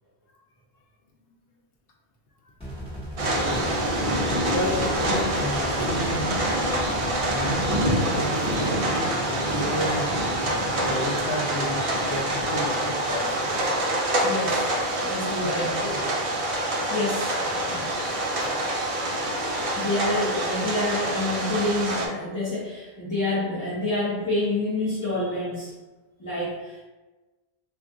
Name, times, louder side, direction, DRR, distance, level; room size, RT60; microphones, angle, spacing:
sound 1, 2.6-7.9, equal, 5° left, 1.1 m, -36 dB
sound 2, 3.2-22.1, right 1 dB, 50° right, 0.4 m, -26 dB
voice 1, 4.5-6.4 7.2-10.1 10.9-13.7 15.4-16.6, left 1 dB, 65° left, 1 dB, 0.8 m, -32 dB
voice 2, 14.2-14.7 15.0-15.8 16.9-18.6 19.8-25.7 26.2-26.8, left 2 dB, 25° left, -10 dB, 0.5 m, -28 dB
2.4 x 2.4 x 3.6 m, 1.2 s
omnidirectional pair, 1.1 m